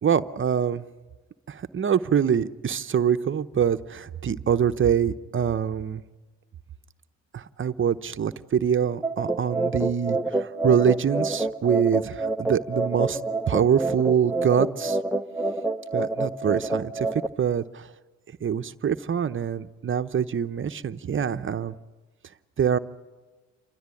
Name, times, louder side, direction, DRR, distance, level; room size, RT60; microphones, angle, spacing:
voice 1, 0.0-0.8 1.5-6.0 7.3-13.2 13.5-15.0 15.9-17.9 18.4-21.8 22.6-22.8, right 8 dB, 40° right, 10 dB, 0.9 m, -24 dB
sound 1, 9.0-17.3, right 2 dB, 5° right, 0.8 m, -27 dB
29.0 x 13.0 x 9.8 m, 1.2 s
cardioid pair, 90°, 30 cm